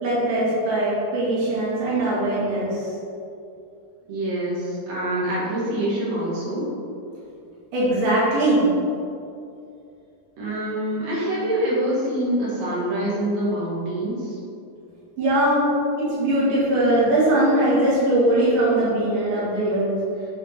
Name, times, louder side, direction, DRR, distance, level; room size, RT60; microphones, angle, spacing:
voice 1, 0.0-2.9 7.7-8.7 15.2-15.7 16.0-20.0, right 1 dB, 85° right, -9 dB, 3.5 m, -21 dB
voice 2, 4.1-6.6 10.4-14.4, right 1 dB, 60° right, -6 dB, 2.6 m, -25 dB
9.5 x 3.6 x 4.4 m, 2.5 s
omnidirectional pair, 3.6 m